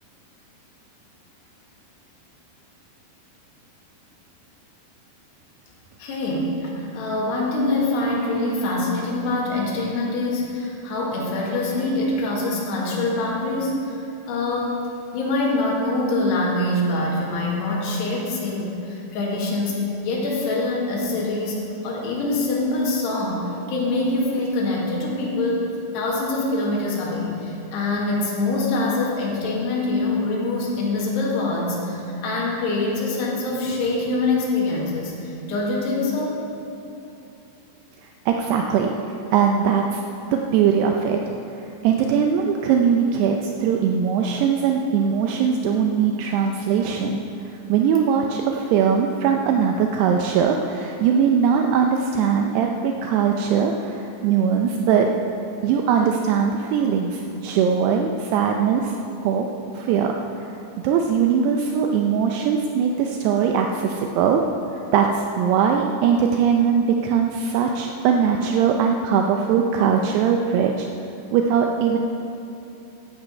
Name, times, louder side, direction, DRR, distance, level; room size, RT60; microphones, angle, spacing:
voice 1, 6.0-14.0 14.3-14.8 15.1-21.6 21.8-25.6 25.9-36.4, left 2 dB, 65° left, -4 dB, 3.8 m, -24 dB
voice 2, 38.3-38.9 39.3-40.0 40.3-41.2 41.8-47.2 47.7-55.1 55.6-58.9 59.2-59.5 59.8-60.1 60.4-60.5 60.8-64.4 64.9-70.9 71.3-72.0, right 7 dB, 85° right, 3 dB, 2.3 m, -20 dB
12.5 x 8.9 x 5.4 m, 2.8 s
omnidirectional pair, 5.4 m